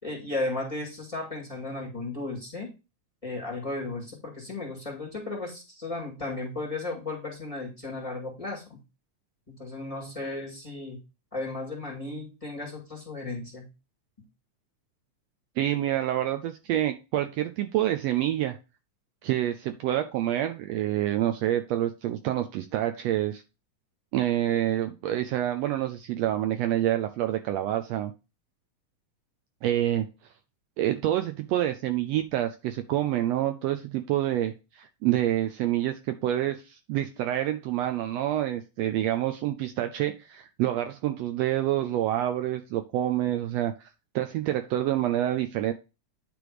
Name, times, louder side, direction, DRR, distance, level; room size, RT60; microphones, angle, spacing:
voice 1, 0.0-2.7 3.2-8.8 9.5-11.0 11.3-13.7, left 2 dB, 15° left, -4 dB, 1.6 m, -35 dB
voice 2, 15.6-18.6 19.2-23.4 24.1-28.1 29.6-30.1 30.8-43.7 44.1-45.7, right 13 dB, 90° right, 8 dB, 1.5 m, -27 dB
9.8 x 3.5 x 4.8 m, 0.28 s
omnidirectional pair, 3.5 m